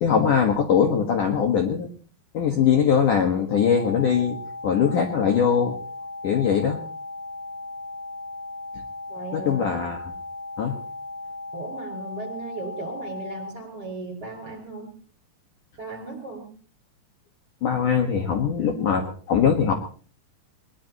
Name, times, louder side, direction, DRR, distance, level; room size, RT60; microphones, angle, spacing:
voice 1, 0.0-1.9 2.3-4.4 4.6-5.7 6.2-6.8 9.3-10.0 10.6-10.8 17.6-19.7, left 7 dB, 60° left, 3 dB, 2.6 m, -21 dB
sound 1, 3.5-13.5, left 2 dB, 20° left, 2.6 m, -37 dB
voice 2, 9.1-9.8 11.5-14.9 15.8-16.5, right 3 dB, 20° right, 4 dB, 5.6 m, -36 dB
22.0 x 21.5 x 3.0 m, 0.40 s
omnidirectional pair, 5.1 m